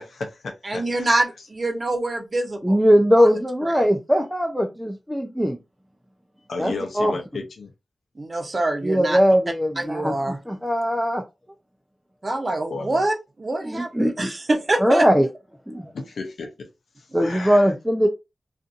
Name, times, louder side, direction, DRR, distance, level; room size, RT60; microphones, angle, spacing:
voice 1, 0.0-1.1 6.5-7.7 12.7-13.1 15.9-16.7 17.0-17.7, left 3 dB, 85° left, 0.6 m, -34 dB
voice 2, 0.6-2.8 3.2-3.3 3.6-3.9 8.1-9.2 9.8-10.4 12.2-15.1 17.1-17.5, right 2 dB, 45° right, 0.8 m, -25 dB
voice 3, 2.6-5.6 6.6-7.1 8.8-11.2 13.6-14.3 14.8-15.3 15.7-15.9 17.1-18.1, equal, 5° right, 0.5 m, -20 dB
2.5 x 2.5 x 2.5 m
cardioid pair, 50°, 0 cm